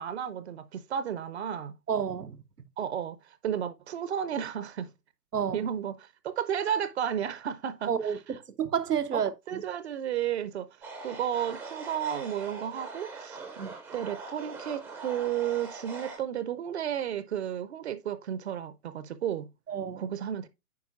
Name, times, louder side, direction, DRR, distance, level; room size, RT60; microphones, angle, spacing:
voice 1, 0.0-1.8 2.8-4.9 5.5-8.2 9.1-9.2 9.5-10.7 11.0-13.4 13.9-19.5 20.0-20.5, right 9 dB, 45° right, 0.7 m, -33 dB
voice 2, 1.9-2.4 5.3-5.6 7.9-9.6 13.6-13.7 19.7-20.1, right 8 dB, 85° right, 0.9 m, -30 dB
sound 1, 10.8-16.2, right 3 dB, 5° right, 0.5 m, -42 dB
9.5 x 5.0 x 2.4 m
hypercardioid pair, 130°, 46 cm